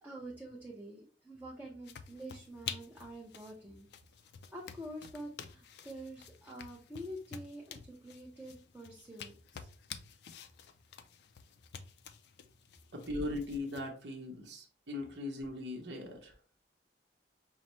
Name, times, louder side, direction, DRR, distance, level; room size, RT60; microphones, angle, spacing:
voice 1, 0.0-3.9 4.2-9.7, right 1 dB, 10° right, -3 dB, 0.6 m, -47 dB
sound 1, 1.8-13.9, left 7 dB, 65° left, 0.4 m, -50 dB
voice 2, 12.9-16.3, left 2 dB, 80° right, 0 dB, 0.8 m, -39 dB
5.5 x 2.1 x 3.0 m, 0.40 s
head